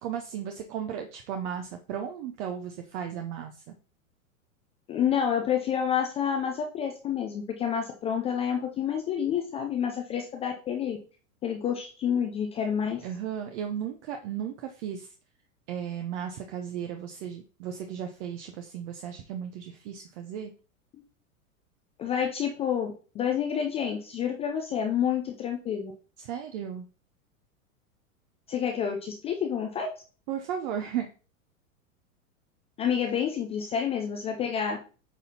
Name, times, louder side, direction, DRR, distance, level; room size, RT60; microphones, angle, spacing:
voice 1, 0.0-3.6 13.0-15.1 15.7-20.5 26.2-26.9 30.3-31.1, right 8 dB, 50° right, 4 dB, 0.8 m, -35 dB
voice 2, 4.9-11.0 11.4-13.0 20.9-21.0 22.0-25.9 28.5-29.9 32.8-34.8, left 8 dB, 15° left, 3 dB, 0.3 m, -29 dB
8.3 x 4.0 x 2.8 m, 0.37 s
hypercardioid pair, 100°, 43 cm